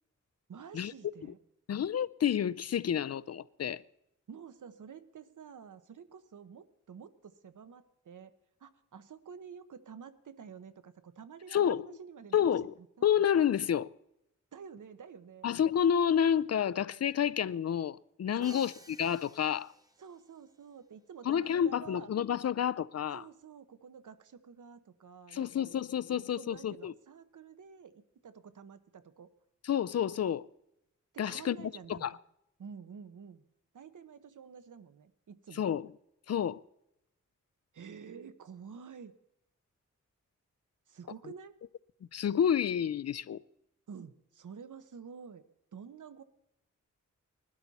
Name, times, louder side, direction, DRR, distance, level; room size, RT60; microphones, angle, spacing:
voice 1, 0.5-1.4 4.3-8.3 8.6-13.1 14.5-15.5 18.4-18.6 20.0-22.1 23.1-25.7 26.1-29.3 31.1-32.2 32.6-33.4 33.7-35.6 37.7-39.1 40.9-41.6 43.9-45.4 45.7-46.2, right 6 dB, 80° right, 1.0 m, -50 dB
voice 2, 1.7-3.8 11.5-11.9 12.3-12.7 13.0-13.9 15.4-18.7 19.0-19.7 21.3-23.2 25.3-26.9 29.6-30.5 31.2-31.6 31.9-32.1 35.5-35.9 36.3-36.6 42.1-43.4, left 9 dB, 55° left, 0.4 m, -29 dB
Crash cymbal, 18.4-20.3, right 2 dB, 10° right, 1.1 m, -55 dB
20.5 x 12.5 x 4.1 m
wide cardioid pair, 145°, 30 cm